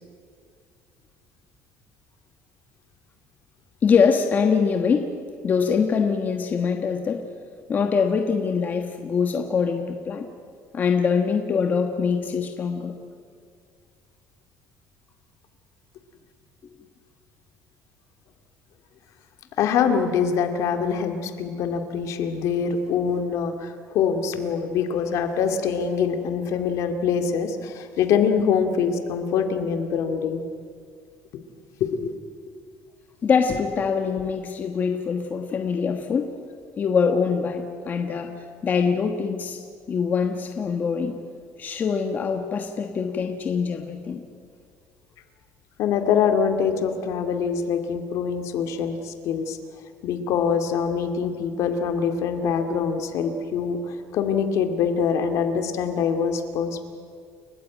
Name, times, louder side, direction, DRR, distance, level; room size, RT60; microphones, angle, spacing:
voice 1, 3.8-5.1 5.4-7.2 7.7-10.3 10.7-12.9 33.2-36.3 36.8-38.3 38.6-39.6 39.9-41.1 41.6-44.2, left 6 dB, 30° left, 5 dB, 1.3 m, -23 dB
voice 2, 19.6-30.4 31.3-31.4 31.8-32.2 45.8-49.6 50.0-56.9, left 6 dB, 60° left, 7 dB, 2.3 m, -24 dB
29.5 x 14.5 x 9.4 m, 2.2 s
cardioid pair, 165°, 6 cm